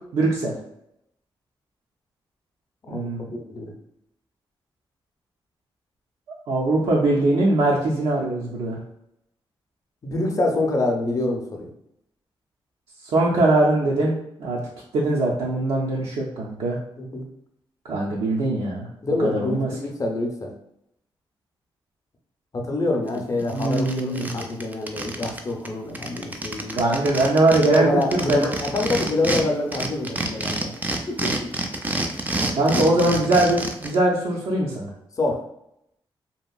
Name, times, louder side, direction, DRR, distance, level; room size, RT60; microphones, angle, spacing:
voice 1, 0.1-0.5 2.9-3.3 6.5-8.8 13.1-14.1 14.4-14.6 14.9-16.8 17.9-18.9 19.2-19.7 23.5-24.3 26.7-28.5 32.6-34.9, right 2 dB, 90° right, -4 dB, 0.5 m, -21 dB
voice 2, 2.8-3.7 10.0-11.7 17.0-17.3 19.0-20.5 22.5-26.8 27.6-30.8 31.1-31.5 32.6-33.2 35.2-35.4, left 2 dB, 35° left, 1 dB, 0.6 m, -26 dB
sound 1, 23.1-23.2 23.5-25.4 25.6-25.7 25.9-29.4 29.7-33.9, right 2 dB, 20° right, 0.3 m, -28 dB
2.8 x 2.5 x 2.3 m, 0.79 s
cardioid pair, 95°, 9 cm